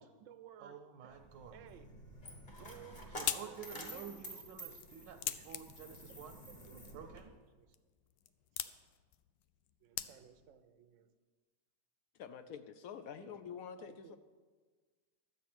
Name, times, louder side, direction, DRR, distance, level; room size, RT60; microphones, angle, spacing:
voice 1, 0.0-1.1 1.5-1.9 2.6-4.2 5.3-6.0 6.4-7.7 9.8-11.1 12.4-12.5 13.2-13.4 13.8-14.2, right 9 dB, 60° right, 0.9 m, -58 dB
voice 2, 0.6-1.6 3.1-6.4 6.7-7.3, right 7 dB, 80° right, 1.4 m, -51 dB
Coin (dropping), 1.1-7.2, equal, 30° left, 1.5 m, -50 dB
sound 1, 2.6-10.6, left 12 dB, 85° left, 1.2 m, -45 dB
voice 3, 12.2-14.2, left 7 dB, 65° left, 0.9 m, -47 dB
12.0 x 8.1 x 6.0 m
omnidirectional pair, 1.9 m